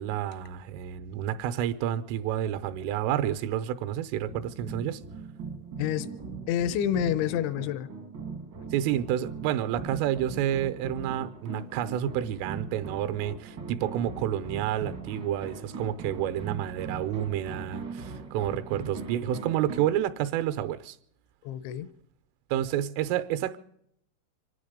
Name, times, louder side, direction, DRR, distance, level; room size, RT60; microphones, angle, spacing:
voice 1, 0.0-5.0 8.7-21.0 22.5-23.6, right 11 dB, 85° right, 3.4 m, -29 dB
sound 1, 4.3-19.9, right 5 dB, 70° right, 1.1 m, -40 dB
voice 2, 5.8-6.2 6.5-7.9 21.4-21.9, left 10 dB, 80° left, 3.1 m, -28 dB
25.5 x 11.0 x 5.1 m
omnidirectional pair, 5.7 m